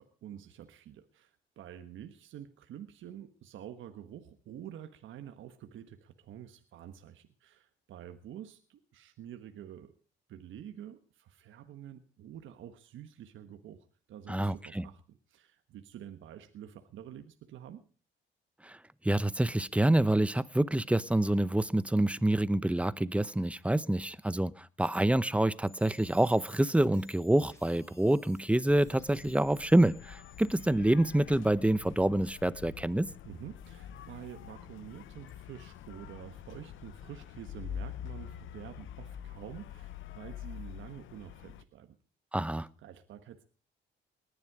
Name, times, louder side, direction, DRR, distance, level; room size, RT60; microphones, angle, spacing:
voice 1, 0.0-9.9 10.3-17.8 33.2-41.9 42.8-43.4, right 10 dB, 75° right, 1.4 m, -48 dB
voice 2, 14.3-14.9 18.6-18.8 19.0-33.1 42.3-42.7, right 1 dB, 5° right, 0.8 m, -27 dB
sound 1, 25.7-30.7, left 3 dB, 15° left, 4.1 m, -60 dB
sound 2, 28.7-41.6, left 9 dB, 80° left, 1.0 m, -46 dB
19.5 x 11.0 x 4.8 m
cardioid pair, 90°, 20 cm